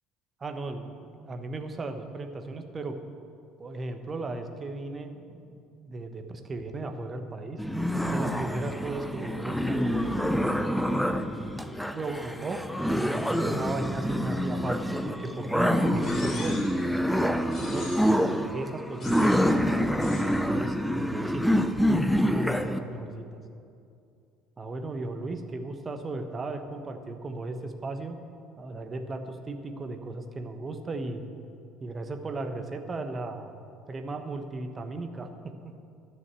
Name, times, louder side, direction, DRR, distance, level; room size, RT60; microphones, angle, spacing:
voice 1, 0.4-3.0 3.6-7.6 8.1-10.2 11.0-12.6 12.9-16.6 17.6-19.4 20.0-21.5 21.7-23.2 24.6-28.2 28.6-31.3 31.8-33.5 33.9-35.3 35.6-35.7, right 2 dB, 30° right, 7 dB, 1.1 m, -36 dB
sound 1, 7.6-22.8, equal, ahead, 0.7 m, -27 dB
sound 2, 16.0-16.8 17.5-18.3 19.0-19.5 20.0-20.4, left 2 dB, 35° left, 3.0 m, -42 dB
12.0 x 6.5 x 7.4 m, 2.5 s
figure-of-eight pair, 60°, 0 cm